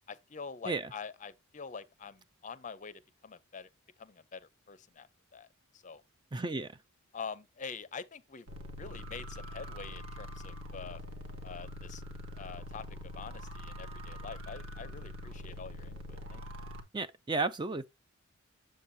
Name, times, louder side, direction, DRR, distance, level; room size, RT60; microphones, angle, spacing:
voice 1, 0.1-3.7 4.0-5.5 5.7-6.0 7.1-8.5 8.8-11.0 11.4-12.0 12.3-12.9 13.1-16.4, left 5 dB, 35° left, 0.6 m, -45 dB
voice 2, 6.3-6.7 16.9-17.9, right 3 dB, 20° right, 0.4 m, -33 dB
sound 1, 8.5-16.8, left 1 dB, 70° right, 1.5 m, -44 dB
7.4 x 7.1 x 2.7 m
head